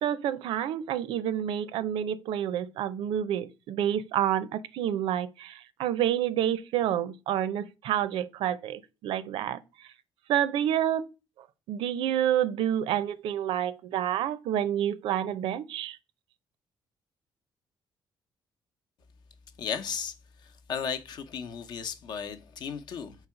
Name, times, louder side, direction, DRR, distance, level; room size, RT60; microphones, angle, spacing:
voice 1, 0.0-9.6 10.3-11.0 11.7-16.0, right 10 dB, 85° right, 0.6 m, -28 dB
voice 2, 19.6-20.1 20.4-23.2, left 7 dB, 60° left, 0.7 m, -35 dB
4.5 x 4.0 x 5.7 m
cardioid pair, 160°, 9 cm